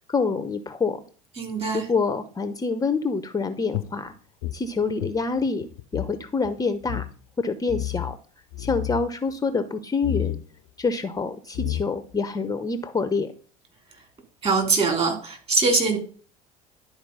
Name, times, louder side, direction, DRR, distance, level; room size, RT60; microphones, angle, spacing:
voice 1, 0.1-1.0 1.7-4.1 4.5-5.7 5.9-7.1 7.4-8.2 8.6-10.4 10.8-13.3, left 4 dB, 20° left, 11 dB, 0.8 m, -26 dB
voice 2, 1.4-1.9 14.4-16.0, right 3 dB, 30° right, 3 dB, 3.6 m, -22 dB
sound 1, 3.7-6.2 6.4-6.5 6.8-7.1 7.7-8.2 8.5-9.1 10.0-10.4 11.2-11.3 11.5-12.2, left 14 dB, 70° left, 0.6 m, -30 dB
11.5 x 4.5 x 5.5 m, 0.41 s
hypercardioid pair, 65°, 18 cm